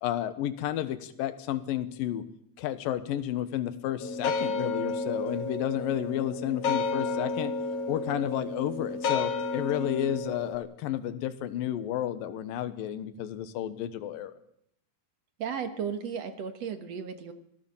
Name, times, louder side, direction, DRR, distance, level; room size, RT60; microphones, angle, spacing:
voice 1, 0.0-2.2 2.6-7.5 7.9-14.3, left 11 dB, 75° left, 11 dB, 2.9 m, -31 dB
sound 1, 4.0-10.5, left 4 dB, 50° left, 2.8 m, -31 dB
voice 2, 15.4-17.3, right 7 dB, 60° right, 9 dB, 2.2 m, -34 dB
25.5 x 16.5 x 7.2 m, 0.73 s
omnidirectional pair, 4.1 m